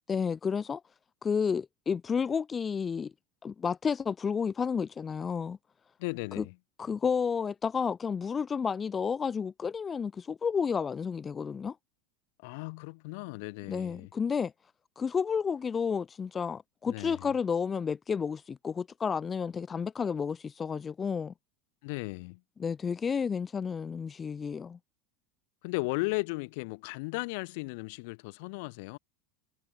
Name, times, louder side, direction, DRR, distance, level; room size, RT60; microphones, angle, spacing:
voice 1, 0.1-0.8 1.2-3.1 3.4-5.6 6.4-6.5 6.8-11.8 13.7-14.5 15.0-21.3 22.6-24.8, left 6 dB, 25° left, 0.8 m, -31 dB
voice 2, 6.0-6.6 12.4-14.1 16.9-17.3 21.8-22.4 25.6-29.0, left 27 dB, 65° left, 2.4 m, -36 dB
hypercardioid pair, 90°, 0 cm